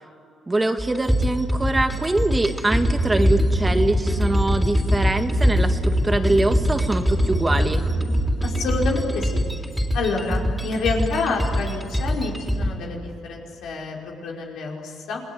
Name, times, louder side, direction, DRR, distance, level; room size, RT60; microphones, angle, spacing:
voice 1, 0.5-7.8, right 2 dB, 20° right, 6 dB, 1.8 m, -23 dB
sound 1, 0.8-12.7, equal, ahead, 3.7 m, -23 dB
voice 2, 8.4-9.5 9.9-15.2, left 4 dB, 80° left, -1 dB, 5.0 m, -28 dB
28.0 x 19.0 x 9.6 m, 2.5 s
cardioid pair, 90°, 0 cm